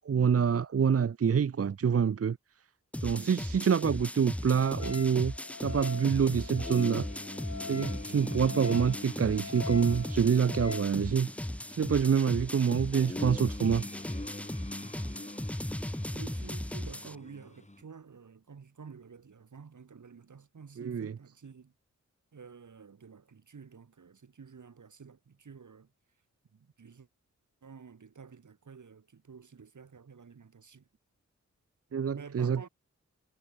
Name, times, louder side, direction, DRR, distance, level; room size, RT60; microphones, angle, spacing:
voice 1, 0.0-2.4 3.0-7.1 7.7-11.3 11.7-13.8 20.8-21.1 31.9-32.7, right 7 dB, 55° right, 0.6 m, -27 dB
sound 1, 2.9-17.2, left 1 dB, 5° left, 0.5 m, -37 dB
Wind instrument woodwind instrument, 4.8-11.0, left 4 dB, 65° left, 5.5 m, -42 dB
sound 2, 6.6-17.8, left 2 dB, 25° left, 7.4 m, -44 dB
voice 2, 16.1-21.7 22.3-25.9 26.5-27.1 27.6-30.9 32.1-32.7, right 6 dB, 85° right, 2.6 m, -50 dB
wide cardioid pair, 75°, 29 cm